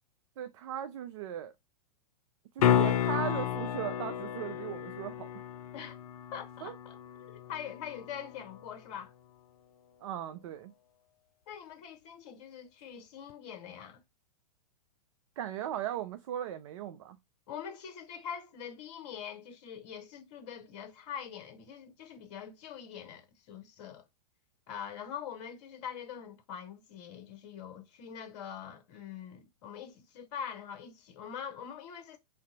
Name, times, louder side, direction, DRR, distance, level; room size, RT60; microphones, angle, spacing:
voice 1, 0.4-1.5 2.6-5.3 6.6-6.7 10.0-10.7 15.4-17.2, right 11 dB, 50° right, 0.4 m, -38 dB
sound 1, 2.6-8.6 13.3-13.4, left 10 dB, 65° left, 0.4 m, -32 dB
voice 2, 6.3-7.0 7.3-9.1 11.5-14.0 17.5-24.0 24.7-32.2, left 8 dB, 45° left, 0.8 m, -43 dB
2.6 x 2.1 x 4.0 m
figure-of-eight pair, 105°, 20 cm